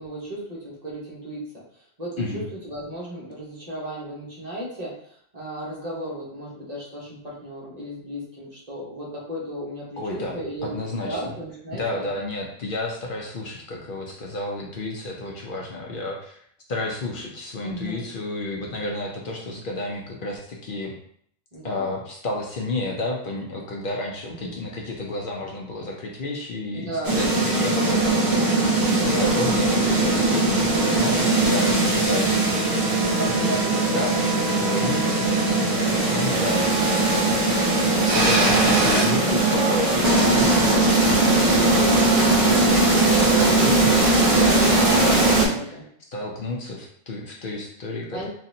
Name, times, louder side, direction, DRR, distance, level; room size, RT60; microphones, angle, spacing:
voice 1, 0.0-1.5 2.0-5.0 5.3-12.2 17.6-18.1 21.5-21.9 24.3-24.7 26.7-27.7 29.0-29.3 33.2-34.2 35.7-36.2 40.4-40.9 44.7-45.8 48.1-48.3, right 1 dB, 40° right, -5 dB, 1.2 m, -35 dB
voice 2, 10.0-11.3 11.7-16.4 16.7-20.9 21.6-33.5 33.9-34.2 34.5-37.8 38.1-45.8 46.1-48.3, left 2 dB, 60° left, -1 dB, 0.7 m, -31 dB
sound 1, 27.0-45.5, right 2 dB, 60° right, 1.2 m, -20 dB
sound 2, 29.7-39.5, right 6 dB, 85° right, 0.8 m, -36 dB
4.0 x 2.5 x 2.6 m, 0.64 s
omnidirectional pair, 1.1 m